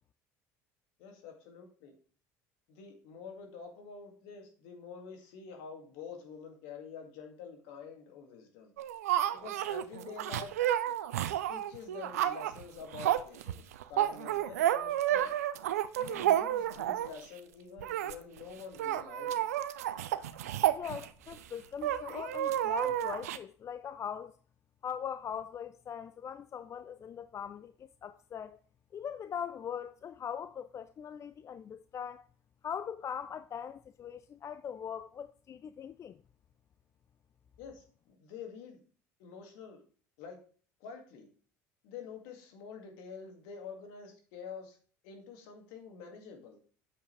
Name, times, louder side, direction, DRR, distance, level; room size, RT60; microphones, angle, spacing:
voice 1, 1.0-2.0 2.7-8.7 9.3-10.5 11.5-15.3 15.9-19.5 37.6-38.8 39.2-39.8 40.2-40.4 40.8-41.3 41.8-44.8 45.0-46.6, left 6 dB, 75° left, 2.1 m, -47 dB
sound 1, 8.8-17.2 17.8-18.1 18.4-18.5 18.7-21.4 21.8-23.4, right 12 dB, 85° right, 0.5 m, -31 dB
voice 2, 20.8-24.3 24.8-27.7 28.0-28.6 28.9-32.3 32.6-36.2, left 8 dB, 40° left, 0.4 m, -41 dB
8.6 x 7.4 x 3.3 m
hypercardioid pair, 70°, 8 cm